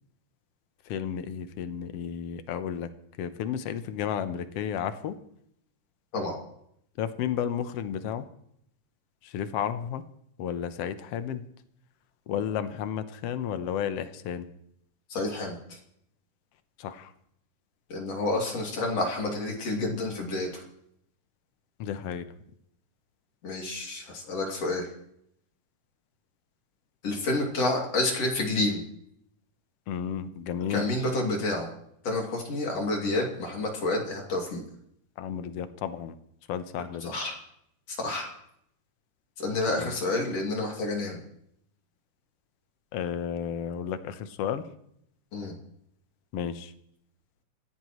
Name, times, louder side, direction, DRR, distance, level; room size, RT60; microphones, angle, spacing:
voice 1, 0.9-2.9 3.2-5.2 7.0-8.2 9.2-10.0 10.4-11.4 12.3-14.4 16.8-17.1 21.8-22.2 29.9-30.8 35.2-36.1 36.5-37.1 39.8-39.9 42.9-44.6 46.3-46.7, left 9 dB, 70° left, 11 dB, 1.5 m, -32 dB
voice 2, 15.1-15.8 17.9-20.6 23.4-24.9 27.0-28.8 30.7-31.7 32.0-34.6 37.0-37.4 37.9-38.3 39.4-41.2 45.3-45.5, left 2 dB, 50° left, 0 dB, 3.7 m, -29 dB
27.5 x 16.0 x 3.1 m, 0.72 s
omnidirectional pair, 3.8 m